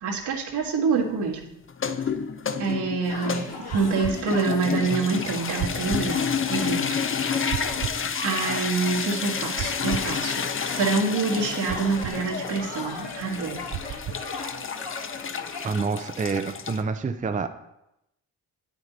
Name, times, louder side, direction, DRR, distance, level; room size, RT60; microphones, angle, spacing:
voice 1, 0.0-1.4 2.6-3.5 3.7-6.2 6.5-6.8 8.2-13.6, right 4 dB, 75° right, -3 dB, 1.8 m, -26 dB
sound 1, 1.7-16.8, left 6 dB, 30° left, 0.6 m, -30 dB
sound 2, 3.1-15.7, left 3 dB, 65° left, 2.1 m, -38 dB
sound 3, 3.7-4.2 5.6-6.1 7.5-8.0 9.6-10.1 11.7-12.2 13.7-14.2, right 10 dB, 60° right, 0.6 m, -32 dB
voice 2, 15.6-17.5, right 4 dB, 20° right, 8 dB, 0.5 m, -27 dB
8.8 x 6.0 x 4.0 m, 0.86 s
cardioid pair, 65°, 41 cm